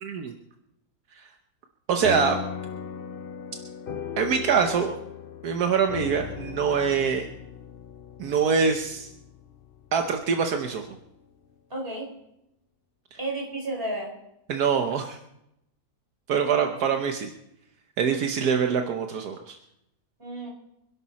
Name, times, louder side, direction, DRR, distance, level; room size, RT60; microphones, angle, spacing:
voice 1, 0.0-0.3 1.2-1.3 1.9-2.4 4.2-5.0 5.4-7.3 8.2-9.1 9.9-10.9 14.5-15.2 16.3-17.3 18.0-19.6, right 6 dB, 80° right, 4 dB, 1.5 m, -24 dB
sound 1, 2.0-10.8, left 7 dB, 55° left, 0.6 m, -37 dB
voice 2, 11.7-12.1 13.2-14.1 20.2-20.5, right 1 dB, 35° right, -1 dB, 4.9 m, -32 dB
25.5 x 11.5 x 4.2 m, 0.83 s
omnidirectional pair, 1.6 m